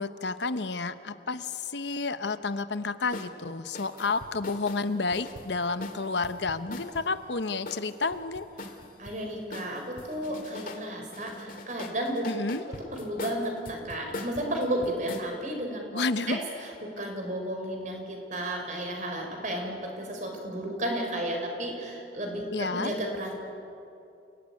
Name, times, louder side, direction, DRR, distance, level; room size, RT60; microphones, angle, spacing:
voice 1, 0.0-8.5 12.2-12.6 15.9-16.4 22.5-23.0, left 3 dB, 80° left, 11 dB, 1.0 m, -30 dB
sound 1, 3.1-3.3 3.7-7.1 7.7-9.2 9.5-10.8 11.1-15.3, left 2 dB, 50° left, 2.2 m, -41 dB
voice 2, 9.0-12.2 12.7-23.3, right 1 dB, 45° right, 2 dB, 5.1 m, -33 dB
28.5 x 18.0 x 9.6 m, 2.7 s
head